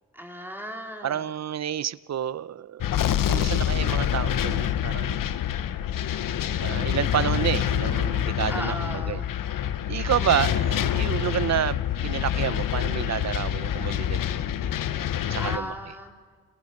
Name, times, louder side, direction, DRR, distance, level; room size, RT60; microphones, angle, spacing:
voice 1, 0.1-1.3 8.5-9.3 15.4-16.1, equal, 5° right, 1 dB, 3.4 m, -36 dB
voice 2, 1.0-5.2 6.6-9.2 9.9-14.5 15.3-15.8, right 10 dB, 55° right, 19 dB, 0.7 m, -29 dB
sound 1, 2.8-15.6, left 10 dB, 75° left, 0.9 m, -26 dB
30.0 x 15.5 x 6.6 m, 1.5 s
cardioid pair, 55°, 33 cm